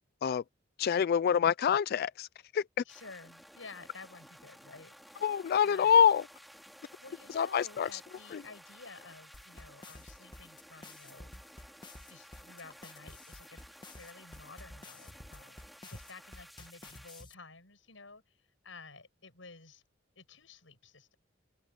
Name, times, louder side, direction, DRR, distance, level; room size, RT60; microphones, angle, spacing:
voice 1, 0.8-2.3 2.5-2.8 5.2-6.2 7.3-8.0 8.3-8.4, left 7 dB, 55° left, 0.3 m, -26 dB
voice 2, 2.8-4.9 5.6-5.9 7.0-11.3 12.1-19.8 20.1-21.2, left 3 dB, 90° left, 6.4 m, -52 dB
sound 1, 2.9-17.2, equal, ahead, 5.5 m, -55 dB
sound 2, 9.3-17.3, left 2 dB, 25° left, 1.5 m, -51 dB
open air
head